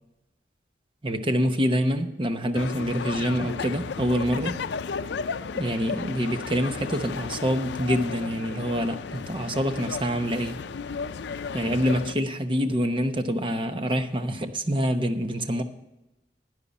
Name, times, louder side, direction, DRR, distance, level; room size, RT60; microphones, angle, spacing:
voice 1, 1.0-4.5 5.5-10.6 11.5-15.6, equal, 30° right, 8 dB, 0.9 m, -26 dB
sound 1, 2.5-12.2, left 5 dB, 85° left, 0.5 m, -34 dB
12.5 x 9.8 x 4.2 m, 0.96 s
head